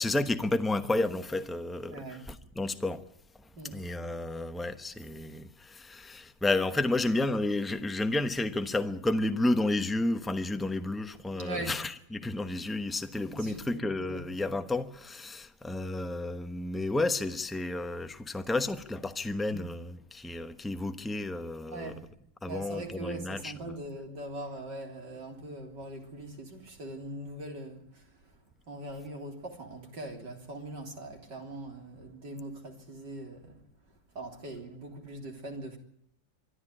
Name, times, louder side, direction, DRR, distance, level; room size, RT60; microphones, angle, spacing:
voice 1, 0.0-3.0 3.7-21.9 22.4-23.5, left 2 dB, ahead, 0.4 m, -31 dB
voice 2, 1.9-2.3 3.6-3.8 11.3-11.7 13.3-14.3 19.5-19.7 21.7-22.1 22.4-28.1 28.7-33.6 34.1-35.8, right 1 dB, 60° right, 4.2 m, -41 dB
24.5 x 13.0 x 9.9 m
omnidirectional pair, 2.1 m